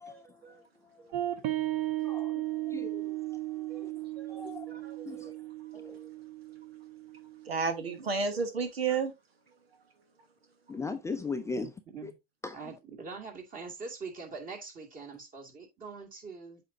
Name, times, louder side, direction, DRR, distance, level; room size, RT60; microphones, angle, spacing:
voice 1, 0.1-0.6 1.0-1.1 3.7-3.8 4.2-5.3 5.7-6.1 7.4-9.1, right 5 dB, 85° right, 1.3 m, -34 dB
sound 1, 1.1-8.0, right 16 dB, 50° right, 1.1 m, -36 dB
voice 2, 2.0-3.9 4.3-5.3 5.7-6.0 10.7-11.7 12.0-12.1 12.4-12.6, left 4 dB, 10° left, 0.5 m, -39 dB
voice 3, 11.6-12.2 12.5-16.6, right 4 dB, 30° right, 2.3 m, -43 dB
8.2 x 4.4 x 2.7 m
hypercardioid pair, 95°, 30 cm